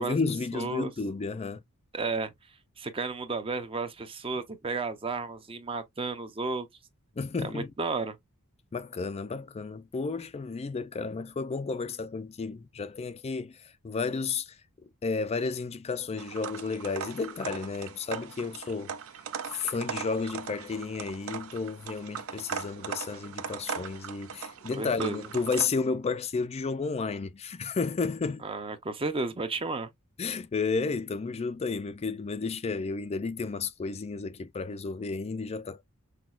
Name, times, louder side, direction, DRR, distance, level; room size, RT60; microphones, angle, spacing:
voice 1, 0.0-1.6 7.2-7.7 8.7-13.6 13.8-14.6 15.0-19.0 19.5-28.4 30.2-35.8, left 4 dB, 30° left, 0.4 m, -32 dB
voice 2, 0.5-0.9 1.9-2.3 2.8-6.7 7.4-8.2 24.8-25.2 28.4-29.9, right 3 dB, 25° right, 0.6 m, -32 dB
sound 1, 16.2-25.7, right 7 dB, 65° right, 0.6 m, -39 dB
5.9 x 2.3 x 2.3 m
head